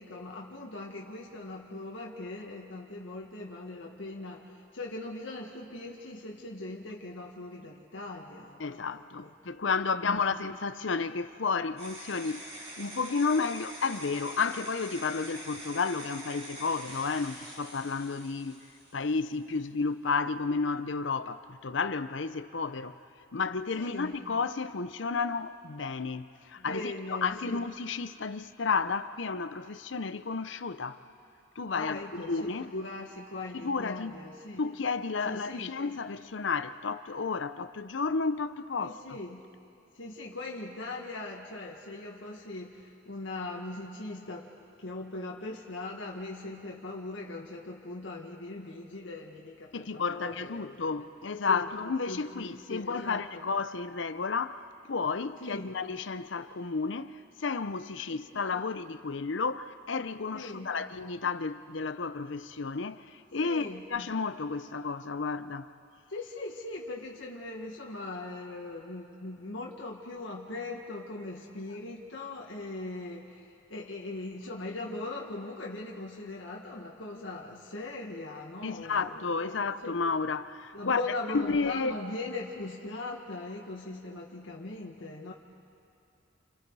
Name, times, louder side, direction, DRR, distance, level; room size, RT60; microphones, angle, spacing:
voice 1, 0.0-9.3 10.0-10.3 23.8-24.1 26.6-27.7 31.7-34.6 35.2-35.7 38.8-39.4 39.9-44.5 44.8-50.9 51.4-51.7 52.1-53.4 55.4-55.7 58.1-58.4 60.3-60.7 63.4-63.9 66.1-80.0 80.7-85.3, left 2 dB, 90° left, 1.8 m, -40 dB
voice 2, 8.6-18.6 18.9-23.0 23.3-31.0 31.6-32.0 32.3-32.7 33.5-34.2 34.6-39.2 49.7-65.7 78.6-81.0 81.3-81.9, left 4 dB, 75° left, 0.7 m, -32 dB
sound 1, 11.8-19.3, right 1 dB, 35° right, 4.8 m, -45 dB
29.0 x 29.0 x 4.8 m
head